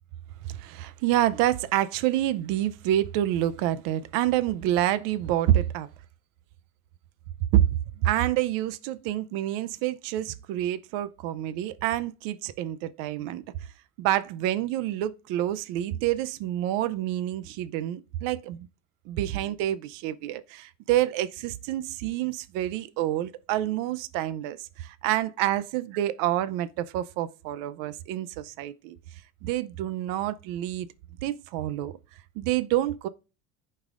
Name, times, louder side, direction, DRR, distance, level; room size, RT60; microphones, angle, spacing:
voice 1, 0.4-5.9 7.5-7.7 8.0-13.4 14.0-18.7 19.1-28.9 29.4-30.9 31.2-31.9 32.4-33.1, right 13 dB, 70° right, 0.7 m, -27 dB
15.0 x 5.5 x 2.5 m
supercardioid pair, 120°, 35 cm